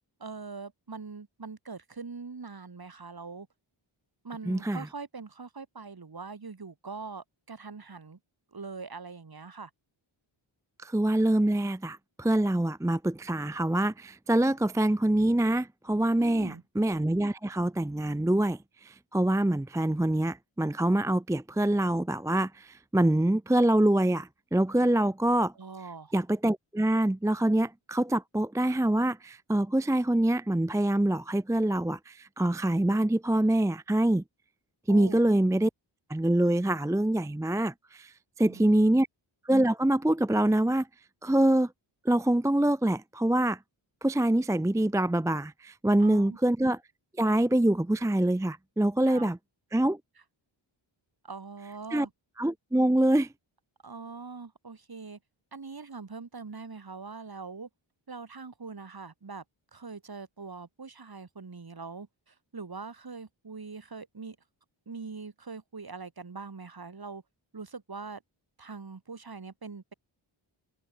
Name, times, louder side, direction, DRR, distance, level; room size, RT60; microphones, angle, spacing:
voice 1, 0.2-3.5 4.2-8.2 8.5-9.7 16.2-16.6 25.6-26.1 34.9-35.2 38.5-39.0 46.0-46.4 49.1-49.3 51.2-52.1 53.8-55.2 55.5-57.7 58.1-59.4 59.7-64.4 64.9-67.2 67.5-68.2 68.6-69.9, right 4 dB, 45° right, 6.0 m, -42 dB
voice 2, 4.5-4.9 10.8-25.5 26.1-34.2 34.9-35.7 36.1-39.1 39.4-40.9 41.2-41.7 42.0-43.6 44.0-46.8 47.2-49.4 49.7-50.0 51.9-52.1 52.4-53.3, right 1 dB, 5° right, 0.6 m, -25 dB
wide cardioid pair, 100°, 49 cm